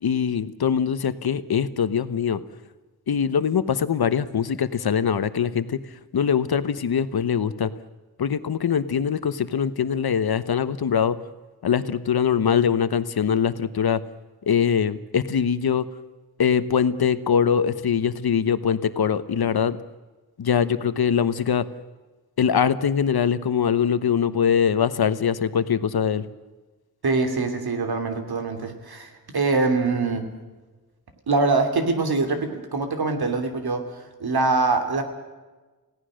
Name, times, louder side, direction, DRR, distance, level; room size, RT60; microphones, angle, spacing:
voice 1, 0.0-2.4 3.1-5.8 6.1-7.7 8.2-11.2 11.6-14.0 14.5-15.8 16.4-19.8 20.4-21.6 22.4-26.3, left 7 dB, 85° left, 13 dB, 1.1 m, -22 dB
voice 2, 27.0-30.3 31.3-35.0, right 3 dB, 90° right, 6 dB, 3.1 m, -24 dB
29.5 x 17.0 x 6.5 m, 1.2 s
wide cardioid pair, 120°, 36 cm